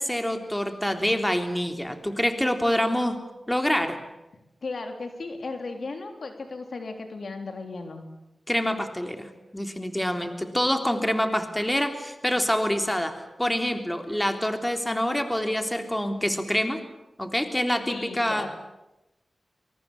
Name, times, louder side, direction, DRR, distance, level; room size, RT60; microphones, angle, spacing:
voice 1, 0.0-3.2 3.5-4.0 8.5-16.8 17.2-18.5, equal, 10° left, 6 dB, 3.4 m, -26 dB
voice 2, 4.6-8.1 17.9-18.6, left 3 dB, 70° left, 5 dB, 3.6 m, -35 dB
24.0 x 22.5 x 8.6 m, 0.97 s
cardioid pair, 45°, 0 cm